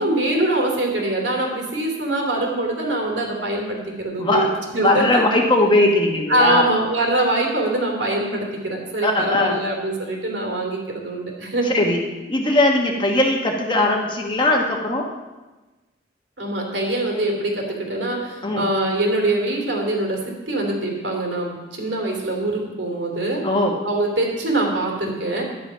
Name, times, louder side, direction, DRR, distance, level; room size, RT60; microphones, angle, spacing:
voice 1, 0.0-5.2 6.3-11.8 16.4-23.4 23.8-25.4, right 2 dB, 70° right, 0 dB, 3.0 m, -23 dB
voice 2, 4.8-6.6 9.0-9.6 11.6-12.0 12.3-15.1 18.4-18.7 23.4-23.8, left 2 dB, 25° left, 1 dB, 1.3 m, -19 dB
11.5 x 10.0 x 5.6 m, 1.2 s
head